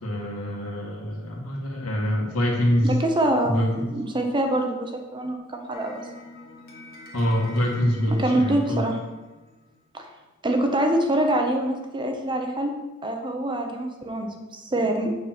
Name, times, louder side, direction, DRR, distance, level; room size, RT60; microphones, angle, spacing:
voice 1, 0.0-2.9 3.4-3.9 7.1-8.8, equal, 70° left, -2 dB, 1.9 m, -25 dB
voice 2, 2.8-6.0 8.1-9.0 9.9-10.0 10.4-12.8 13.0-15.2, right 1 dB, 20° right, 4 dB, 1.0 m, -25 dB
sound 1, 5.7-10.0, left 2 dB, 45° left, 1.4 m, -46 dB
8.3 x 4.4 x 6.1 m, 1.1 s
head